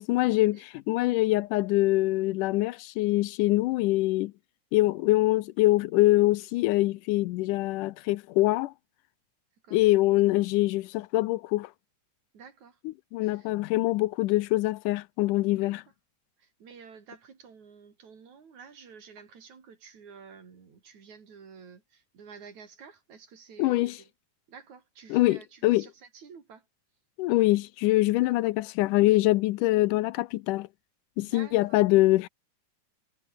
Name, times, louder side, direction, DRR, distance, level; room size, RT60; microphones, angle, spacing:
voice 1, 0.0-4.3 4.7-8.7 9.7-11.7 13.1-15.8 23.6-24.0 25.1-25.9 27.2-30.7 31.2-32.3, left 18 dB, 85° left, 2.2 m, -24 dB
voice 2, 12.3-12.8 13.2-13.5 15.6-15.7 16.4-24.1 24.5-26.7 28.2-28.5 31.2-31.8, right 6 dB, 65° right, 4.7 m, -50 dB
omnidirectional pair, 3.6 m